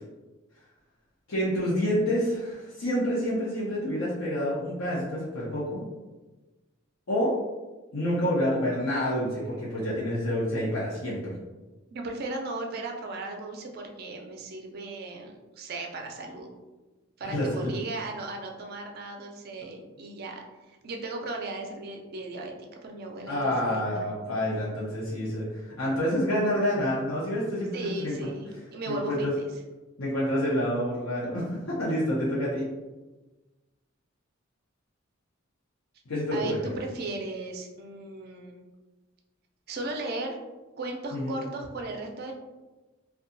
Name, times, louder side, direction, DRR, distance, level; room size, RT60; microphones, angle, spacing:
voice 1, 1.3-5.8 7.1-7.3 7.9-11.3 17.2-17.7 23.3-28.1 28.9-29.3 30.0-32.6 36.1-36.8 41.1-41.3, equal, 85° left, -8 dB, 0.7 m, -28 dB
voice 2, 11.9-16.5 17.2-24.1 27.7-29.5 36.3-38.6 39.7-40.4 40.8-42.4, right 2 dB, 50° right, 2 dB, 0.4 m, -36 dB
2.7 x 2.2 x 2.5 m, 1.2 s
head